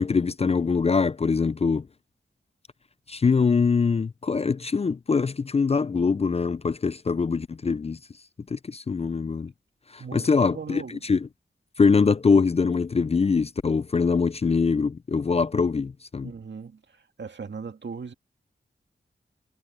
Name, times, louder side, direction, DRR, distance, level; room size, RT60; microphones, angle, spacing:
voice 1, 0.0-1.9 3.1-8.0 8.5-9.5 9.9-11.3 11.8-16.3, left 5 dB, 30° left, 0.4 m, -23 dB
voice 2, 10.0-11.0 16.2-16.8 17.2-18.1, right 5 dB, 65° right, 2.1 m, -38 dB
cardioid pair, 55°, 19 cm